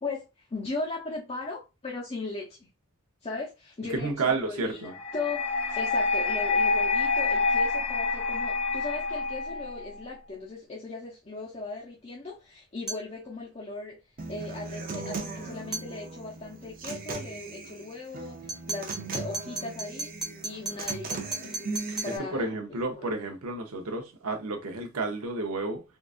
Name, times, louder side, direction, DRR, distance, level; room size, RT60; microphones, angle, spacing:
voice 1, 0.0-2.7 3.2-5.4 5.7-14.0 14.3-20.1 20.4-21.5 22.0-22.6 23.0-23.1, left 3 dB, 30° left, 0.6 m, -38 dB
voice 2, 3.9-4.9 22.1-25.8, right 3 dB, 75° right, 0.7 m, -31 dB
sound 1, 4.9-10.0, left 3 dB, 65° left, 1.1 m, -27 dB
sound 2, 12.9-13.1 15.7-15.9 18.5-22.2, right 2 dB, ahead, 0.9 m, -36 dB
Human voice / Acoustic guitar, 14.2-22.2, right 3 dB, 40° right, 0.5 m, -38 dB
3.7 x 2.4 x 2.4 m
head